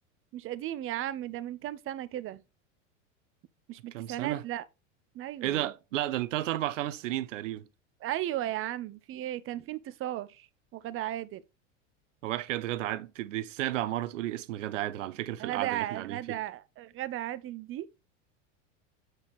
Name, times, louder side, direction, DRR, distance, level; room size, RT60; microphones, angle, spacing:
voice 1, 0.3-2.4 3.7-4.7 5.1-5.7 8.0-10.5 10.7-11.4 15.4-17.9, right 13 dB, 35° right, 0.7 m, -35 dB
voice 2, 3.9-4.4 5.4-7.7 12.2-16.4, right 14 dB, 90° right, 0.8 m, -33 dB
8.0 x 4.4 x 3.0 m
supercardioid pair, 115°, 37 cm